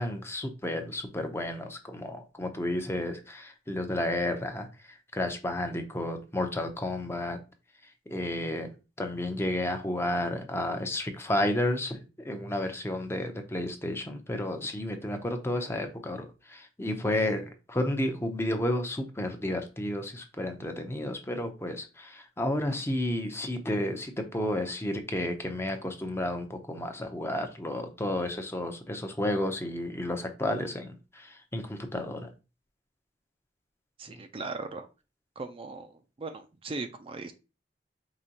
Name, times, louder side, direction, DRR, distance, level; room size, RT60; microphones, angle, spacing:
voice 1, 0.0-7.4 8.1-8.7 9.0-32.3, left 1 dB, 15° left, 6 dB, 0.6 m, -32 dB
voice 2, 34.0-34.9 35.4-37.3, right 3 dB, 30° right, 7 dB, 0.4 m, -38 dB
4.9 x 3.0 x 2.8 m, 0.30 s
head